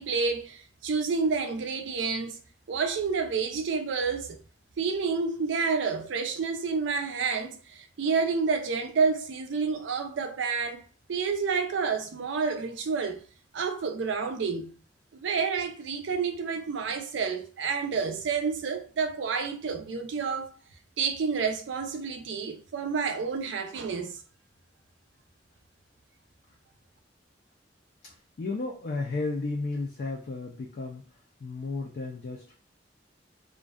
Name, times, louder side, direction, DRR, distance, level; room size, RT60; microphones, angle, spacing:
voice 1, 0.0-2.4 2.7-4.4 4.8-10.8 11.1-13.2 13.5-14.7 15.1-20.5 21.0-24.2, right 5 dB, 75° right, 0.4 m, -29 dB
voice 2, 28.0-31.1 31.4-32.6, left 3 dB, 50° left, 0.3 m, -33 dB
2.5 x 2.2 x 2.2 m
head